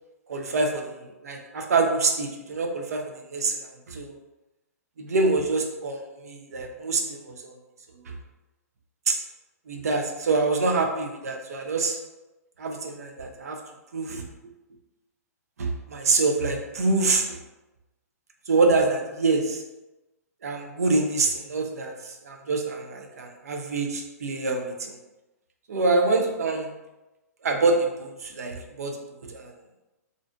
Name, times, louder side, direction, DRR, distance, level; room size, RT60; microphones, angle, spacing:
voice 1, 0.3-3.6 3.9-4.2 5.0-7.5 9.1-9.2 9.7-12.0 12.6-13.6 13.9-14.2 15.6-17.2 18.5-19.6 20.4-21.9 22.2-24.9 25.7-26.7 27.4-28.9 29.2-29.5, right 3 dB, 70° right, 3 dB, 0.5 m, -25 dB
2.5 x 2.4 x 2.2 m, 1.0 s
figure-of-eight pair, 120°, 9 cm